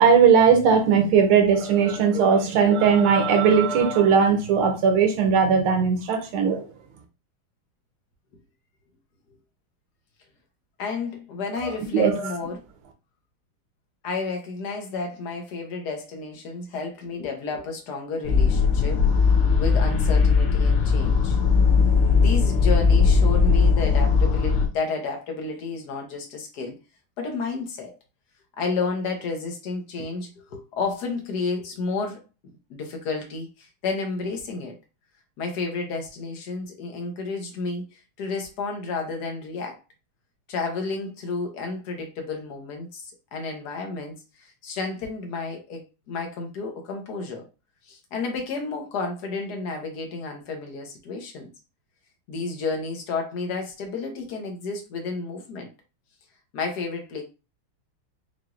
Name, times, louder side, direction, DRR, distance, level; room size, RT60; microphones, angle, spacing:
voice 1, 0.0-6.6 11.9-12.2, right 6 dB, 80° right, 1.8 m, -18 dB
voice 2, 10.8-12.6 14.0-21.4 22.1-26.8 27.2-27.9 28.6-32.2 32.7-34.8 35.4-39.8 40.5-47.5 47.9-51.5 52.3-55.7 56.5-57.2, left 4 dB, 55° left, 1.4 m, -31 dB
sound 1, 18.2-24.7, left 5 dB, 85° left, 1.8 m, -19 dB
5.9 x 2.7 x 2.5 m
omnidirectional pair, 2.3 m